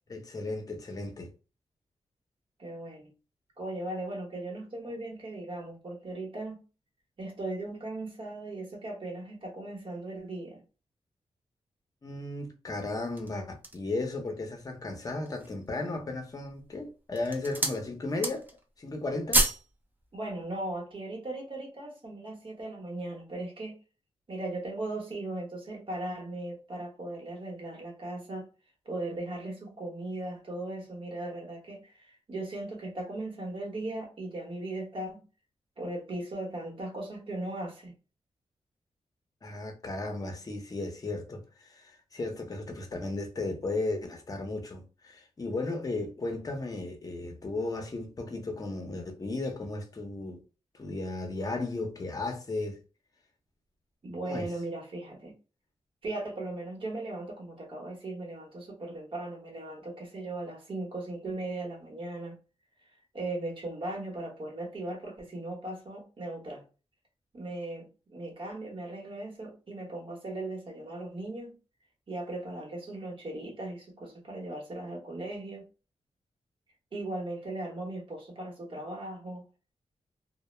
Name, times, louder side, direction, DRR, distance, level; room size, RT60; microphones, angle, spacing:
voice 1, 0.1-1.3 12.0-18.4 18.8-19.5 39.4-50.4 50.7-52.8 54.3-54.5, left 2 dB, 35° left, 0.7 m, -35 dB
voice 2, 2.6-3.1 3.6-6.6 7.2-10.6 20.1-23.8 24.3-28.5 28.8-35.2 35.8-37.9 42.7-42.8 54.0-55.4 56.0-62.4 63.1-66.6 67.3-71.6 72.1-75.6 76.9-79.4, right 2 dB, 50° right, 1.0 m, -38 dB
sound 1, 12.9-13.9 14.5-14.6 15.1-15.7 16.4-16.7 17.1-17.8 18.1-18.6 18.9-19.7 20.0-20.2, right 1 dB, 15° right, 0.5 m, -29 dB
2.1 x 2.0 x 3.1 m
wide cardioid pair, 90°, 11 cm